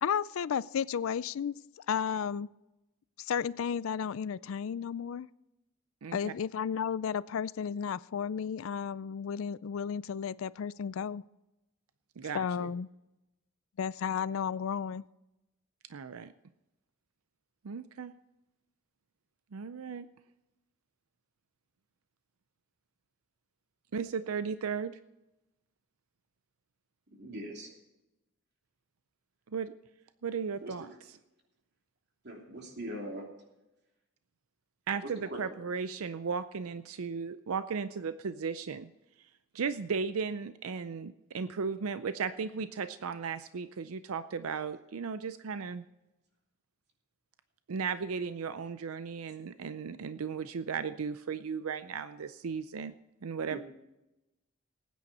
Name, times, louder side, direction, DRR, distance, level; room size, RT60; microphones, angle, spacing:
voice 1, 0.0-2.5 3.2-5.3 6.1-11.2 12.3-12.9 13.8-15.0, left 7 dB, 70° left, 19 dB, 0.4 m, -33 dB
voice 2, 6.0-6.3 12.2-12.7 15.9-16.3 17.6-18.1 19.5-20.1 23.9-24.9 29.5-29.7 30.2-30.9 34.9-38.9 39.5-45.8 47.7-52.9 53.2-53.6, right 5 dB, 85° right, 12 dB, 0.5 m, -36 dB
voice 3, 27.2-27.7 30.6-30.7 32.2-33.3 35.3-35.4 53.5-53.6, right 1 dB, 50° right, 1 dB, 3.0 m, -41 dB
19.0 x 9.4 x 4.2 m, 0.96 s
head